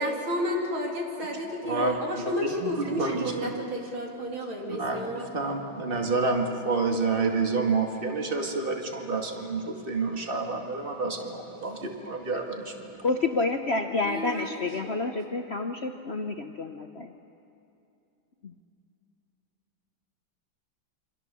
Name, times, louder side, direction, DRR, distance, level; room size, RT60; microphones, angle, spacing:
voice 1, 0.0-5.3 14.0-14.5 14.8-15.1, equal, 90° right, -1 dB, 4.1 m, -32 dB
voice 2, 1.7-2.2 2.6-3.2 4.7-12.9, right 3 dB, 25° right, 2 dB, 2.3 m, -29 dB
voice 3, 13.0-17.1 18.4-18.5, left 3 dB, 45° left, 4 dB, 0.9 m, -29 dB
28.0 x 25.0 x 7.0 m, 2.6 s
omnidirectional pair, 2.2 m